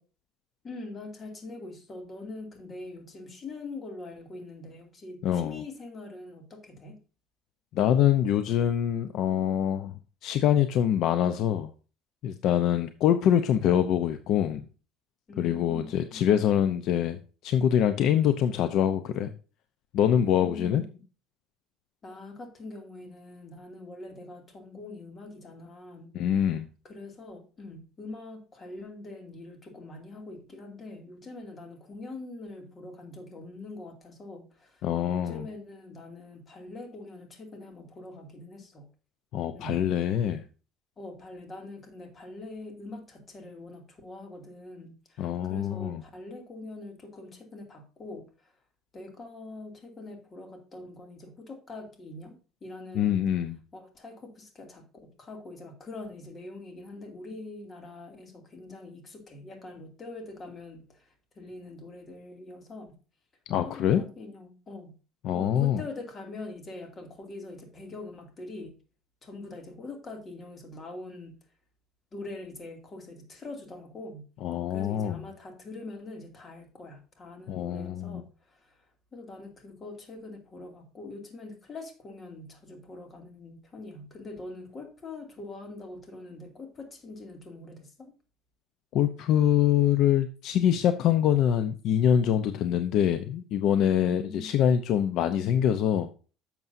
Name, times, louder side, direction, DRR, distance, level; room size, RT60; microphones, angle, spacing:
voice 1, 0.6-7.0 15.3-16.2 20.1-21.0 22.0-26.6 26.8-38.9 39.5-39.9 41.0-48.5 48.9-53.2 53.7-63.0 63.6-65.0 65.3-68.8 69.2-71.4 72.1-74.2 74.7-78.9 79.1-88.1 93.8-94.6, left 2 dB, 30° left, 4 dB, 2.5 m, -43 dB
voice 2, 5.2-5.6 7.7-9.9 10.2-11.7 12.2-14.7 15.4-17.2 17.4-19.3 19.9-20.8 26.1-26.7 34.8-35.5 39.3-40.4 45.2-46.0 52.9-53.6 63.5-64.0 65.2-65.8 74.4-75.2 77.5-78.2 88.9-96.1, left 10 dB, 60° left, 10 dB, 0.7 m, -24 dB
11.0 x 7.0 x 2.7 m, 0.35 s
cardioid pair, 125°, 0 cm